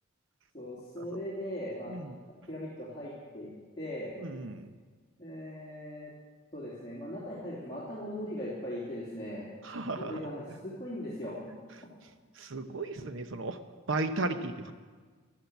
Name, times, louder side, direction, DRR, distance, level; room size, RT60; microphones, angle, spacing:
voice 1, 0.5-1.9 2.5-3.5 3.8-4.1 5.2-6.1 6.5-9.4 10.0-11.4, equal, 20° left, -9 dB, 3.0 m, -39 dB
voice 2, 4.2-4.7 9.6-10.1 12.4-13.6 13.9-14.7, right 2 dB, 60° right, 9 dB, 0.9 m, -34 dB
13.0 x 13.0 x 8.0 m, 1.5 s
head